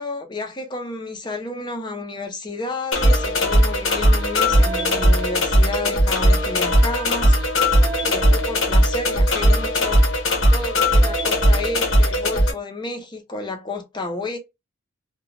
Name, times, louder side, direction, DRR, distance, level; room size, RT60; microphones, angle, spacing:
voice 1, 0.0-7.4 8.0-10.0 10.5-14.4, left 2 dB, 20° left, 0.5 m, -31 dB
sound 1, 2.9-12.5, equal, 65° left, 0.8 m, -18 dB
Wind instrument woodwind instrument, 3.8-9.3, right 4 dB, 85° right, 0.6 m, -39 dB
2.8 x 2.2 x 2.5 m
head